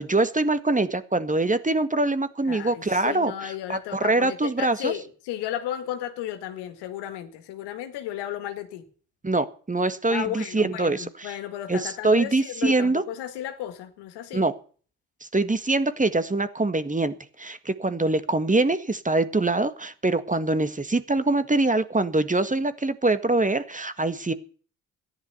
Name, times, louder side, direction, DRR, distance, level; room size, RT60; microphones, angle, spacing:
voice 1, 0.0-4.9 9.2-11.3 11.7-13.0 14.3-14.5 15.3-24.3, right 2 dB, 20° right, 1.7 m, -24 dB
voice 2, 2.4-8.8 10.1-14.4, left 12 dB, 80° left, 2.0 m, -34 dB
13.5 x 11.0 x 6.9 m
hypercardioid pair, 50°, 40 cm